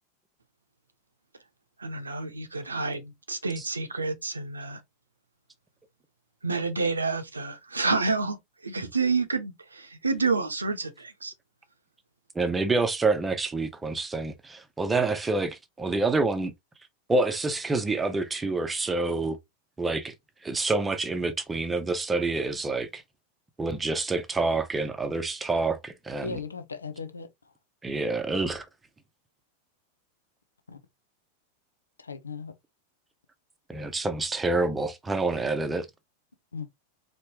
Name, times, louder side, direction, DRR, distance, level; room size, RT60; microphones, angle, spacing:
voice 1, 1.8-4.8 6.4-11.3, right 4 dB, 80° right, 0.7 m, -29 dB
voice 2, 12.3-16.5 17.1-19.4 19.8-20.1 20.4-23.0 23.6-26.4 27.8-28.7 33.7-35.9, right 3 dB, 10° right, 0.8 m, -27 dB
voice 3, 26.2-27.5 30.7-30.8 32.0-32.5 36.5-36.7, left 5 dB, 75° left, 0.6 m, -37 dB
4.4 x 3.0 x 2.8 m
figure-of-eight pair, 90°, 0 cm